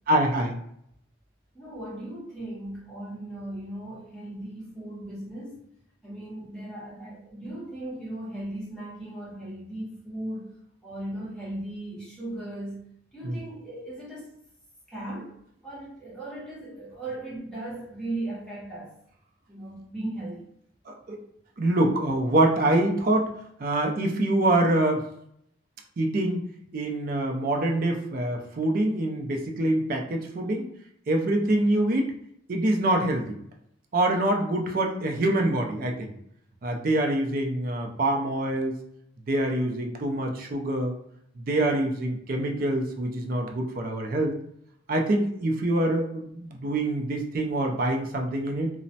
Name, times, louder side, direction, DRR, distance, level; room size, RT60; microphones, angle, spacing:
voice 1, 0.1-0.6 13.2-13.4 20.9-21.2 21.6-23.3 23.6-25.0 26.0-26.4 26.7-30.7 31.1-32.1 32.5-33.4 33.9-36.1 36.6-38.8 39.3-41.0 41.4-44.4 44.9-48.7, right 1 dB, 45° right, 2 dB, 0.4 m, -25 dB
voice 2, 1.5-5.6 6.0-10.5 10.8-12.8 13.1-14.4 14.9-15.3 15.6-18.9 19.5-20.4, right 1 dB, 5° left, -8 dB, 0.8 m, -37 dB
3.0 x 2.0 x 2.7 m, 0.73 s
head